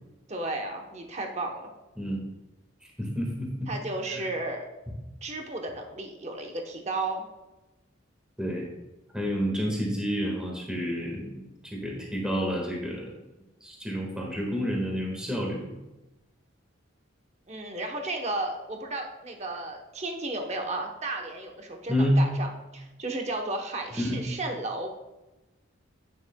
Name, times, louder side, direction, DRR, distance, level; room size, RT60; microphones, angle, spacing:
voice 1, 0.3-1.7 3.7-4.7 5.2-7.3 17.5-24.9, right 2 dB, 35° right, 3 dB, 0.8 m, -33 dB
voice 2, 3.0-3.7 4.1-4.3 8.4-8.7 9.1-13.2 13.6-15.7 21.9-22.3 24.0-24.2, equal, 5° right, -2 dB, 1.5 m, -29 dB
11.0 x 9.2 x 2.2 m, 1.0 s
head